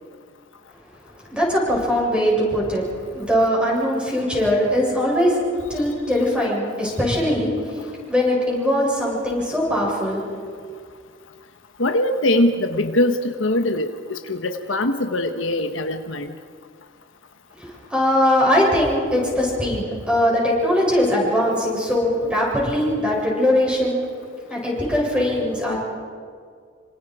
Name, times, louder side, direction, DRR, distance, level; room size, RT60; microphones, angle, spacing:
voice 1, 1.3-5.4 5.7-10.3 17.6-24.0 24.5-25.8, equal, 5° right, -4 dB, 7.7 m, -21 dB
voice 2, 11.8-16.3, left 1 dB, 80° left, 7 dB, 1.3 m, -22 dB
27.5 x 26.0 x 4.9 m, 2.1 s
head